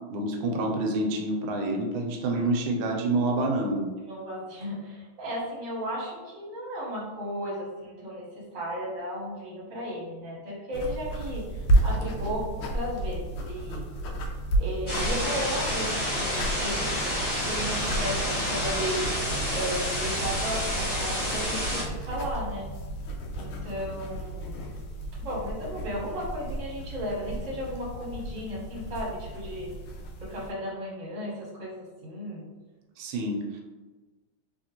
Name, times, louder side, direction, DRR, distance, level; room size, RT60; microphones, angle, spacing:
voice 1, 0.1-3.9 33.0-33.6, right 2 dB, 75° right, 2 dB, 1.4 m, -27 dB
voice 2, 4.0-13.8 14.6-16.9 17.5-19.1 19.5-22.7 23.3-24.7 25.1-29.7 30.2-32.5, equal, 40° right, -5 dB, 1.2 m, -35 dB
sound 1, 10.7-30.5, right 1 dB, 80° left, 1.5 m, -32 dB
sound 2, 14.9-21.8, equal, 20° left, 0.9 m, -29 dB
3.5 x 3.1 x 2.8 m, 1.3 s
omnidirectional pair, 2.4 m